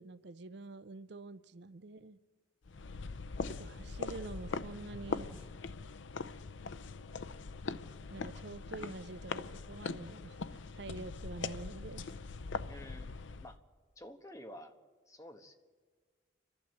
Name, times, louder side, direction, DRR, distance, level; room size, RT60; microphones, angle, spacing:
voice 1, 0.0-2.2 3.5-5.5 8.1-12.2, right 3 dB, 65° right, 15 dB, 0.6 m, -47 dB
sound 1, 2.7-13.6, left 4 dB, 80° left, 0.6 m, -42 dB
voice 2, 12.7-13.6 14.0-14.7 15.1-15.6, left 1 dB, 15° left, 6 dB, 1.2 m, -51 dB
29.5 x 12.0 x 7.8 m, 1.5 s
head